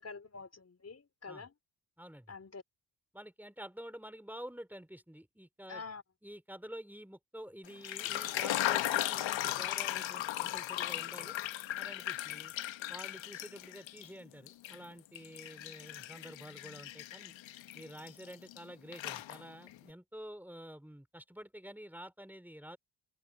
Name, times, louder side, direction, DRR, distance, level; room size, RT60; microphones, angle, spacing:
voice 1, 0.0-1.5 2.3-2.6 5.7-6.0, left 4 dB, 35° left, 4.5 m, -46 dB
voice 2, 2.0-2.3 3.1-5.8 6.2-11.4 11.8-12.5 12.9-17.3 17.7-22.8, equal, 5° right, 4.4 m, -49 dB
sound 1, 7.7-14.1 14.5-18.6 18.9-19.7, left 13 dB, 75° left, 1.3 m, -37 dB
open air
supercardioid pair, 65°, 45 cm